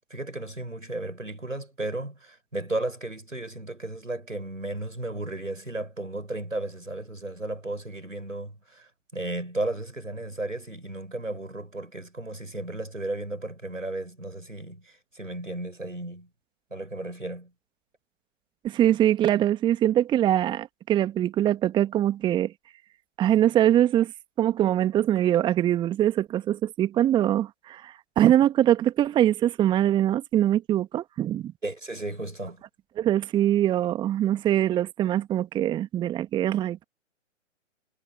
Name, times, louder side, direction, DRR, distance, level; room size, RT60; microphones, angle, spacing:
voice 1, 0.1-16.3 16.7-17.5 31.6-32.6, right 2 dB, 85° right, 5.7 m, -34 dB
voice 2, 18.6-22.5 23.2-24.1 24.4-31.5 33.0-36.8, right 12 dB, 10° right, 1.8 m, -23 dB
figure-of-eight pair, 125°, 38 cm